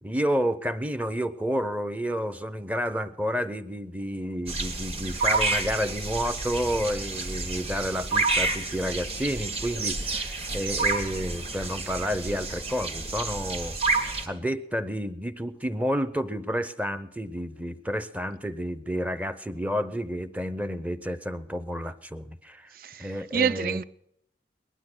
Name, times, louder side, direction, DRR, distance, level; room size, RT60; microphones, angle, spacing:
voice 1, 0.0-13.8 14.2-22.7 23.0-23.8, equal, 10° right, 0.6 m, -30 dB
sound 1, 4.5-14.3, right 3 dB, 35° right, 1.8 m, -29 dB
voice 2, 22.7-23.8, right 7 dB, 50° right, 0.5 m, -28 dB
19.5 x 12.0 x 6.2 m
head